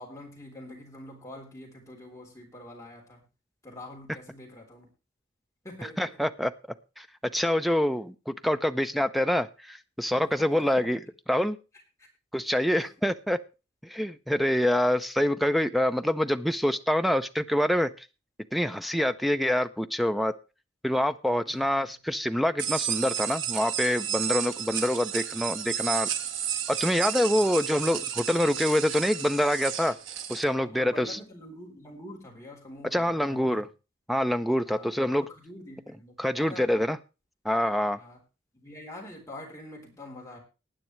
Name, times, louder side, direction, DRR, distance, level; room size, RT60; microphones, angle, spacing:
voice 1, 0.0-3.3 3.6-4.9 5.6-6.2 10.2-10.3 10.6-10.9 12.0-12.1 12.7-12.9 15.5-15.6 21.5-21.9 24.2-24.4 27.3-27.7 30.5-33.6 34.7-34.9 35.2-36.9 38.0-38.2 38.5-40.4, left 1 dB, 15° left, -1 dB, 3.5 m, -46 dB
voice 2, 6.0-6.5 7.0-7.1 7.3-11.0 11.3-11.6 12.3-13.4 13.8-18.1 18.5-20.3 20.8-26.1 26.7-29.9 30.3-31.2 32.9-33.7 34.1-35.3 36.2-37.0 37.4-38.0, left 1 dB, ahead, 11 dB, 0.5 m, -26 dB
sound 1, 22.6-30.4, right 9 dB, 75° right, 1.5 m, -32 dB
19.5 x 9.1 x 3.2 m, 0.30 s
head